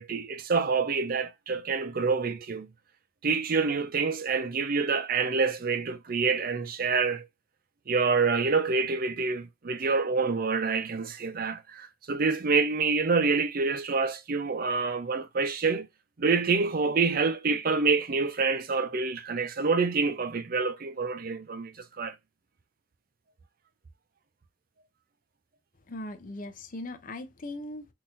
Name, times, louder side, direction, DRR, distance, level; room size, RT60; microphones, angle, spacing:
voice 1, 0.0-2.7 3.2-7.3 7.9-15.9 16.2-22.1, right 4 dB, 50° right, 0.6 m, -27 dB
voice 2, 25.9-27.9, left 1 dB, 45° left, 0.7 m, -39 dB
3.7 x 2.9 x 2.5 m
head